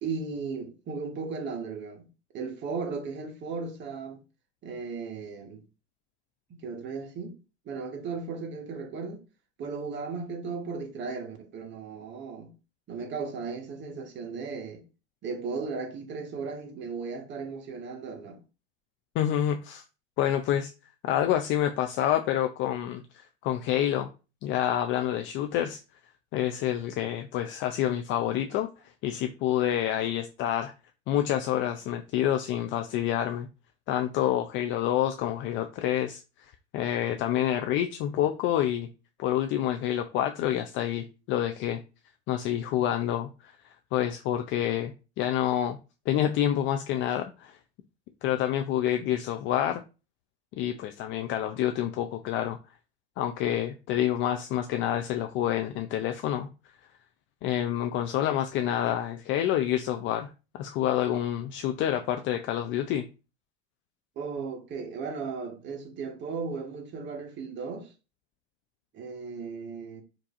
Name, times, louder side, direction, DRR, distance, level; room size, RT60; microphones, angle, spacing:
voice 1, 0.0-2.1 2.3-4.2 4.6-5.6 6.5-7.4 7.6-9.2 9.6-12.5 12.9-14.8 15.2-18.4 64.2-67.9 68.9-70.0, right 5 dB, 35° right, 1.2 m, -36 dB
voice 2, 19.2-19.8 20.2-20.7 21.0-24.1 24.4-25.8 26.3-28.7 29.0-30.7 31.1-33.5 33.9-36.2 36.7-38.9 39.2-41.8 42.3-43.5 43.9-45.8 46.1-47.6 48.2-49.8 50.5-52.6 53.2-56.5 57.4-63.1, left 11 dB, 40° left, 0.4 m, -28 dB
4.6 x 2.7 x 2.5 m
hypercardioid pair, 95°, 32 cm